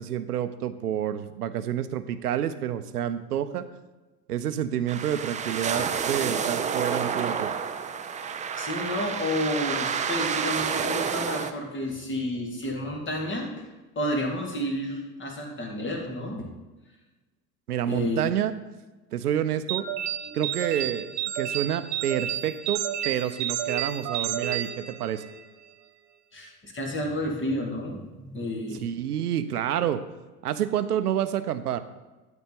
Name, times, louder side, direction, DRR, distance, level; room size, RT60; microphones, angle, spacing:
voice 1, 0.0-3.6 4.3-7.5 17.7-18.5 19.1-19.9 20.3-21.1 21.3-25.2 28.8-30.0 30.4-31.8, right 10 dB, 70° right, 11 dB, 0.8 m, -28 dB
sound 1, 4.9-11.5, right 6 dB, 15° right, 0.6 m, -29 dB
voice 2, 8.6-13.7 14.0-16.5 17.9-18.3 20.2-20.4 26.3-28.8, left 1 dB, 25° left, 1 dB, 2.4 m, -31 dB
sound 2, 19.7-25.4, right 11 dB, 50° right, 1.1 m, -31 dB
13.0 x 4.4 x 7.0 m, 1.2 s
figure-of-eight pair, 70°, 48 cm